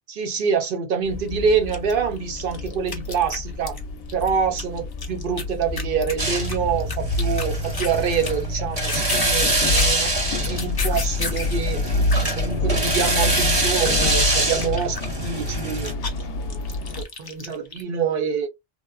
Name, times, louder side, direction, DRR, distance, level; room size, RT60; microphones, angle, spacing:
voice 1, 0.1-3.8 4.1-11.8 12.2-16.0 16.4-16.6 17.0-18.5, right 6 dB, 65° right, 0.8 m, -26 dB
sound 1, 1.0-17.0, left 2 dB, 75° left, 0.8 m, -28 dB
sound 2, 1.3-1.4 1.7-3.8 4.1-8.0 8.2-8.5 8.7-11.6 11.9-17.8, left 4 dB, 35° left, 0.4 m, -33 dB
sound 3, 6.2-15.9, right 2 dB, 30° right, 0.7 m, -25 dB
3.0 x 2.0 x 2.2 m
omnidirectional pair, 1.0 m